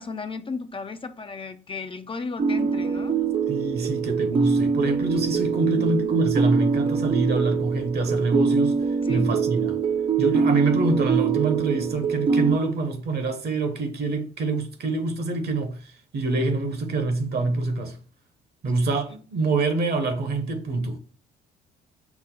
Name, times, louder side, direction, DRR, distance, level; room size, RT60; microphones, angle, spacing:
voice 1, 0.0-3.2 5.6-6.3 9.0-9.4 19.4-19.6, left 4 dB, 25° left, 0.5 m, -35 dB
sound 1, 2.4-12.6, right 5 dB, 30° right, 0.4 m, -24 dB
voice 2, 3.5-8.7 9.1-9.8 10.2-15.8 16.1-18.0 18.6-21.0, right 3 dB, 55° right, 1.1 m, -25 dB
5.9 x 2.1 x 3.8 m
hypercardioid pair, 55°, 20 cm